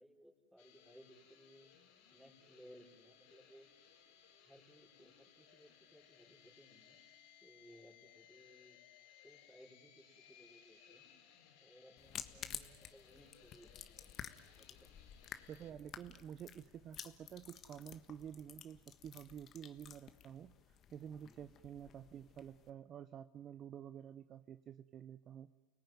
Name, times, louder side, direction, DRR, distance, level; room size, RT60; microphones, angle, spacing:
voice 1, 0.0-1.7 2.1-3.7 4.5-7.0 7.4-8.8 9.2-11.0 11.6-14.1 14.6-15.0 21.1-21.4, equal, 5° right, -1 dB, 5.7 m, -62 dB
sound 1, 0.6-15.7, left 9 dB, 70° left, 3.8 m, -64 dB
sound 2, 12.0-22.7, left 9 dB, 40° left, 1.4 m, -52 dB
voice 2, 15.5-25.5, right 9 dB, 40° right, 11 dB, 0.8 m, -50 dB
29.5 x 18.5 x 9.5 m, 1.3 s
hypercardioid pair, 100°, 0 cm